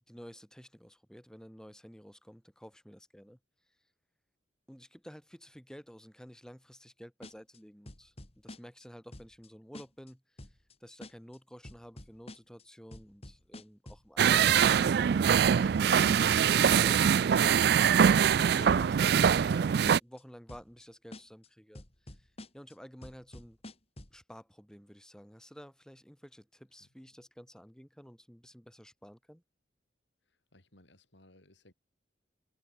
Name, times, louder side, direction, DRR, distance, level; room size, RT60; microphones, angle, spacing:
voice 1, 0.1-3.4 4.7-10.2 10.5-17.3 18.1-21.8 22.1-22.3 22.5-23.6 24.1-29.4, equal, 5° left, 5.8 m, -52 dB
sound 1, 7.2-7.6 7.9-8.8 9.1-9.5 9.7-10.1 10.4-10.7 11.0-11.4 11.6-12.6 12.9-14.5 14.8-15.2 15.4-15.8 16.1-16.4 16.7-17.1 17.3-17.7 18.0-18.9 19.2-19.6 19.9-20.2 20.5-20.8 21.1-21.5 21.7-22.7 23.0-24.2, left 1 dB, 35° left, 2.8 m, -48 dB
sound 2, 14.2-20.0, right 8 dB, 60° right, 0.3 m, -23 dB
voice 2, 30.3-31.7, left 1 dB, 75° left, 6.2 m, -61 dB
head